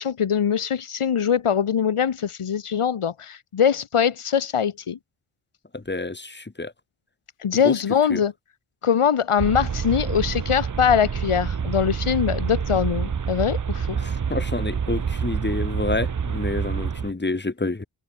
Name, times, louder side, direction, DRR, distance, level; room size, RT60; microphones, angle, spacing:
voice 1, 0.0-5.0 7.4-8.3 8.8-14.0, left 8 dB, 80° left, 2.3 m, -22 dB
voice 2, 5.7-6.7 7.6-7.7 8.1-8.2 14.0-17.8, left 3 dB, 20° left, 2.7 m, -28 dB
sound 1, 9.4-17.1, right 6 dB, 40° right, 0.9 m, -27 dB
wide cardioid pair, 125°, 50 cm